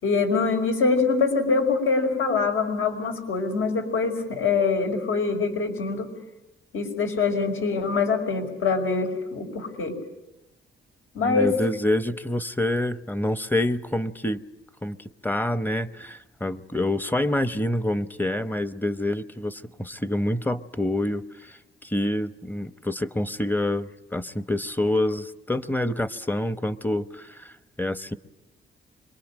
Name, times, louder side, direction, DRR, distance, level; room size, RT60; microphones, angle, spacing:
voice 1, 0.0-6.1 6.7-9.9 11.1-11.5, left 4 dB, 75° left, 3 dB, 5.4 m, -24 dB
voice 2, 11.2-14.4 14.8-15.0 15.2-28.1, left 1 dB, 10° left, 13 dB, 0.9 m, -27 dB
26.0 x 23.0 x 9.0 m, 0.93 s
cardioid pair, 120°, 21 cm